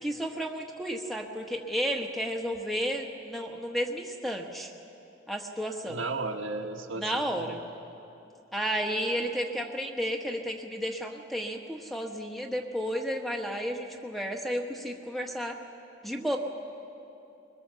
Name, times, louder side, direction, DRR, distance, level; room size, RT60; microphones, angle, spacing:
voice 1, 0.0-4.7 5.3-6.0 7.0-7.6 8.5-15.6 16.0-16.4, equal, ahead, 2 dB, 1.2 m, -32 dB
voice 2, 5.8-7.6, right 3 dB, 85° right, 2 dB, 1.6 m, -35 dB
22.5 x 21.5 x 6.9 m, 2.8 s
head